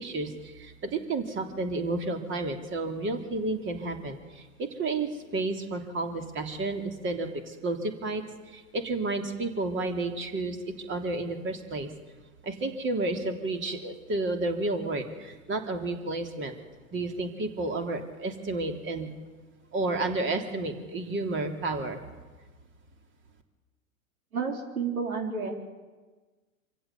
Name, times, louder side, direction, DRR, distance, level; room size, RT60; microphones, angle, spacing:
voice 1, 0.0-11.9 12.4-16.6 16.9-19.1 19.7-22.0, right 2 dB, 25° right, 5 dB, 3.1 m, -31 dB
voice 2, 24.3-25.6, right 5 dB, 75° right, 3 dB, 4.1 m, -31 dB
26.0 x 15.5 x 8.5 m, 1.3 s
figure-of-eight pair, 95°, 43 cm